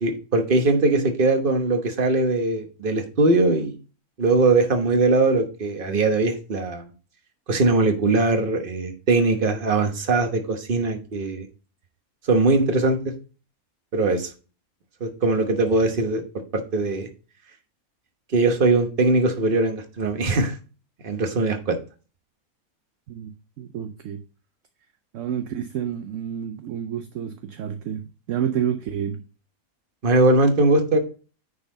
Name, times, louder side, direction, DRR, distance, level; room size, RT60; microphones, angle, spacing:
voice 1, 0.0-3.8 4.2-6.8 7.5-11.5 12.3-13.0 13.9-14.3 15.0-16.2 16.5-17.1 18.3-20.6 21.0-21.8 30.0-31.0, right 2 dB, 40° right, 1.2 m, -21 dB
voice 2, 23.1-24.2 25.1-29.2, right 9 dB, 65° right, 0.9 m, -29 dB
9.7 x 4.2 x 3.9 m
omnidirectional pair, 1.5 m